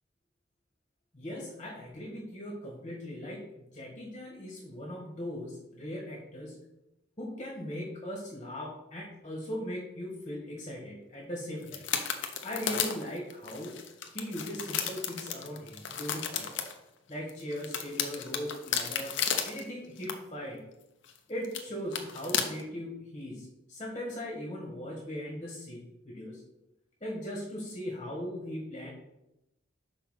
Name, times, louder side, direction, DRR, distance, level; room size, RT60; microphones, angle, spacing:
voice 1, 1.1-6.6 7.2-11.8 12.4-13.8 14.1-16.5 17.1-19.2 19.4-20.6 21.3-26.4 27.0-28.9, equal, 30° left, -2 dB, 1.7 m, -39 dB
sound 1, 11.6-16.7 17.3-19.6 20.0-20.1 21.0-21.2 21.4-21.6 21.9-22.6, left 8 dB, 70° left, 0.8 m, -33 dB
5.8 x 4.9 x 5.7 m, 0.89 s
head